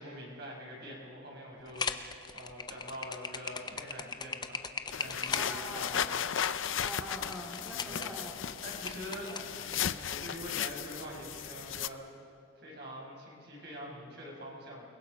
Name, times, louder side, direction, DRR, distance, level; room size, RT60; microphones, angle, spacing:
voice 1, 0.0-6.2 7.8-8.1 8.6-12.0 12.6-14.9, equal, 55° right, -3 dB, 5.7 m, -45 dB
sound 1, 1.7-9.8, left 5 dB, 20° left, 0.6 m, -39 dB
sound 2, 4.9-11.9, left 9 dB, 65° left, 0.5 m, -36 dB
voice 2, 5.3-6.1 6.8-8.3 9.3-9.4, equal, 5° right, -3 dB, 2.8 m, -43 dB
28.5 x 20.5 x 5.2 m, 2.5 s
head